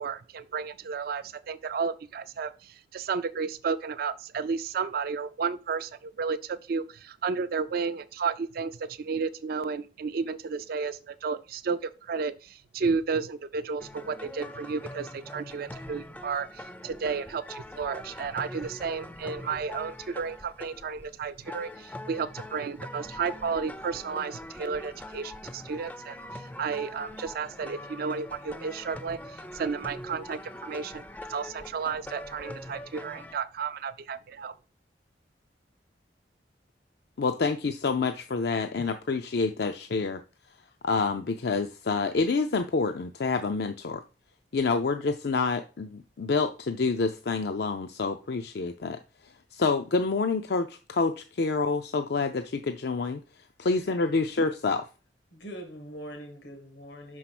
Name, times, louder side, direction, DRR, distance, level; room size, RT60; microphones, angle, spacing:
voice 1, 0.0-31.0 31.3-34.5, right 5 dB, 55° right, 0.4 m, -32 dB
sound 1, 13.8-33.4, left 1 dB, 10° left, 0.4 m, -43 dB
voice 2, 37.2-40.2 40.8-44.0 44.5-49.0 49.2-53.2 53.6-54.8, left 4 dB, 60° left, 0.5 m, -28 dB
voice 3, 55.3-57.2, equal, 85° left, 1.8 m, -42 dB
6.0 x 4.6 x 5.9 m
head